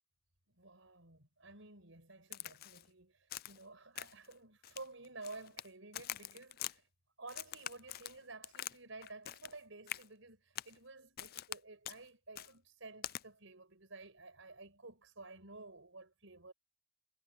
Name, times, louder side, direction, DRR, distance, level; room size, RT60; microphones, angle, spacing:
voice 1, 0.5-6.8 7.2-16.5, right 3 dB, 70° right, 6.3 m, -53 dB
Crack, 2.3-2.9 3.3-3.6 4.0-4.3 4.6-5.7 5.9-6.7 7.3-8.8 9.0-9.6 9.9-10.1 10.6-10.8 11.2-11.6 11.8-12.0 12.4-12.5 13.0-13.2, left 13 dB, 50° left, 0.4 m, -44 dB
head